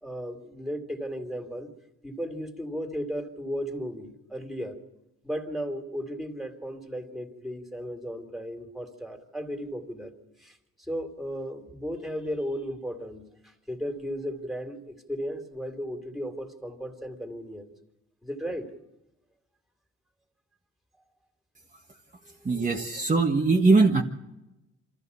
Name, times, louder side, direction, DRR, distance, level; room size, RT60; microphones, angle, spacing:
voice 1, 0.0-1.7 2.0-4.8 5.2-10.1 10.4-10.6 10.9-17.7 18.2-18.7 22.2-22.4, equal, ahead, 5 dB, 3.1 m, -35 dB
voice 2, 22.4-24.0, right 3 dB, 25° right, 0 dB, 1.6 m, -21 dB
26.5 x 14.0 x 7.0 m, 0.96 s
cardioid pair, 90°, 30 cm